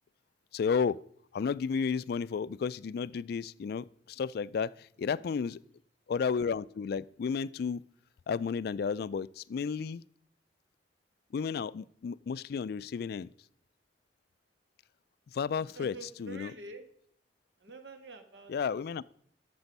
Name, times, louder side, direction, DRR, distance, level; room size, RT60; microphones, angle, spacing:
voice 1, 0.5-1.0 1.3-5.6 6.1-7.8 8.3-10.0 11.3-13.3 15.3-16.5 18.5-19.0, left 6 dB, 60° left, 20 dB, 0.3 m, -32 dB
voice 2, 5.0-5.5 15.7-16.8 17.6-19.1, right 2 dB, 80° right, 7 dB, 1.5 m, -48 dB
12.5 x 6.8 x 5.3 m, 0.65 s
head